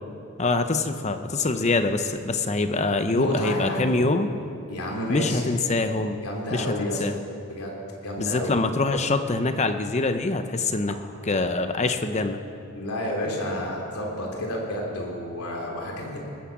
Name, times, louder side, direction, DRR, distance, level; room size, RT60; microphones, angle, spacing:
voice 1, 0.4-4.3 5.1-6.2 6.5-7.2 8.2-10.9 11.2-12.4, left 3 dB, 30° left, 8 dB, 0.8 m, -24 dB
voice 2, 3.1-4.0 4.7-5.5 6.2-7.0 7.5-7.7 8.0-8.6 12.7-16.2, left 1 dB, 85° left, -1 dB, 3.2 m, -30 dB
20.0 x 10.0 x 7.3 m, 2.7 s
head